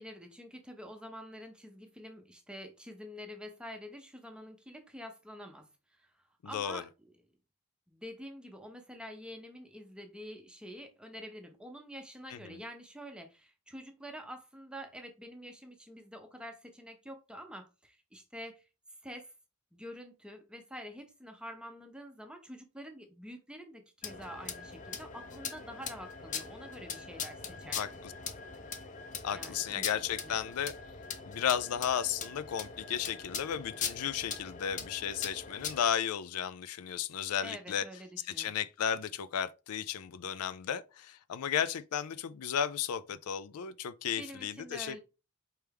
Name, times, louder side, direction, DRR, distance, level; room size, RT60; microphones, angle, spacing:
voice 1, 0.0-6.1 6.4-7.1 7.9-18.7 19.0-19.3 19.7-28.0 29.3-29.9 30.2-30.4 37.4-38.6 44.2-45.0, equal, 5° right, 0.6 m, -47 dB
voice 2, 6.5-6.8 12.3-12.6 27.7-28.1 29.2-30.7 31.2-37.9 38.3-45.0, left 8 dB, 85° left, 0.4 m, -34 dB
sound 1, 24.0-35.9, left 6 dB, 35° left, 0.6 m, -41 dB
4.6 x 3.3 x 3.4 m
head